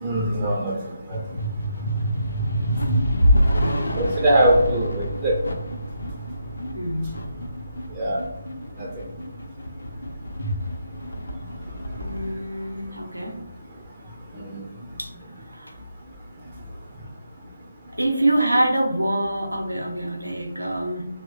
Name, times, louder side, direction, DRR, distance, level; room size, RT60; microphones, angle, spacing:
voice 1, 0.0-1.2 4.0-5.4 8.0-8.2 8.8-8.9 14.3-14.6, right 1 dB, 25° right, -3 dB, 0.4 m, -22 dB
sound 1, 1.1-13.6, equal, 65° left, 0.4 m, -27 dB
voice 2, 3.5-4.0 6.7-7.1 12.0-13.4 15.0-15.1 15.5-15.7 18.0-21.1, right 1 dB, 85° right, 2 dB, 0.6 m, -25 dB
2.9 x 2.0 x 2.5 m, 0.84 s
figure-of-eight pair, 150°, 0 cm